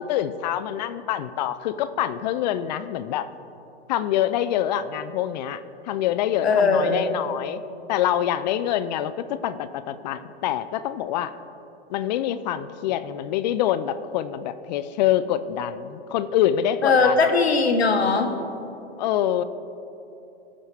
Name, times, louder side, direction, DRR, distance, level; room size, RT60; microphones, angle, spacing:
voice 1, 0.0-3.3 3.9-7.6 7.9-11.3 11.9-17.3 19.0-19.4, left 11 dB, 45° left, 13 dB, 0.4 m, -25 dB
voice 2, 6.4-7.1 16.8-18.3, left 4 dB, 90° left, 5 dB, 1.2 m, -20 dB
16.0 x 5.5 x 3.4 m, 2.9 s
hypercardioid pair, 115°, 31 cm